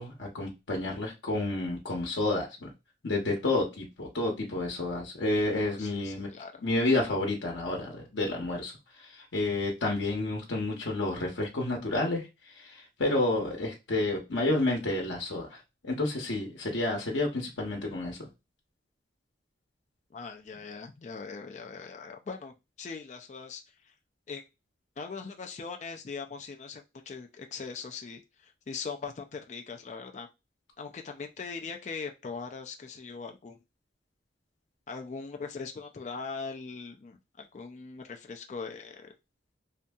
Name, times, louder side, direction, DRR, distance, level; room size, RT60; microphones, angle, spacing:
voice 1, 0.0-2.7 3.0-6.3 6.6-8.7 9.0-12.3 12.5-15.5 15.8-18.3, left 2 dB, 80° left, 0 dB, 0.8 m, -30 dB
voice 2, 5.5-6.7 20.1-23.9 24.3-24.4 25.0-30.3 30.8-33.6 34.9-39.1, left 5 dB, 40° left, 4 dB, 0.3 m, -41 dB
2.7 x 2.6 x 2.3 m, 0.24 s
head